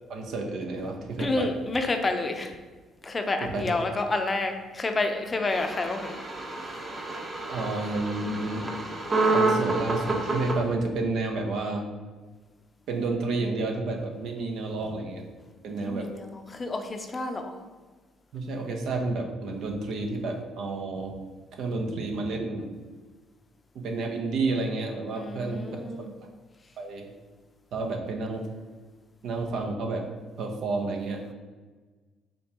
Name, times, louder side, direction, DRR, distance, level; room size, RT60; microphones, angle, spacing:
voice 1, 0.1-1.5 3.4-3.7 7.5-8.7 9.2-11.9 12.9-15.2 15.6-16.1 18.3-21.1 21.5-22.7 23.7-25.9 26.2-26.3 26.8-27.1 27.7-28.5 29.2-30.1 30.4-31.3, right 3 dB, 70° right, 2 dB, 0.7 m, -30 dB
voice 2, 1.2-2.5 3.0-6.1 15.8-17.5 25.2-26.1, left 2 dB, 30° left, 6 dB, 0.5 m, -29 dB
sound 1, 5.5-10.5, right 2 dB, 30° right, 0.9 m, -28 dB
5.3 x 3.4 x 2.9 m, 1.3 s
supercardioid pair, 75°, 0 cm